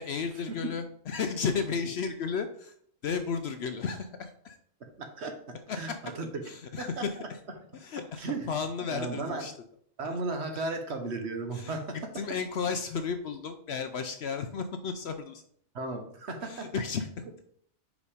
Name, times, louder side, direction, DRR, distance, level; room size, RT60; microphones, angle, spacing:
voice 1, 0.0-2.7 3.0-4.6 5.7-6.0 6.4-7.4 7.7-9.5 11.5-11.7 12.1-15.4 16.4-17.1, left 5 dB, 60° left, 8 dB, 0.7 m, -33 dB
voice 2, 4.8-6.3 6.6-7.3 8.2-8.5 8.9-9.4 10.0-12.2 15.7-16.7, right 3 dB, 55° right, 5 dB, 1.2 m, -35 dB
5.2 x 5.2 x 4.9 m, 0.63 s
omnidirectional pair, 1.4 m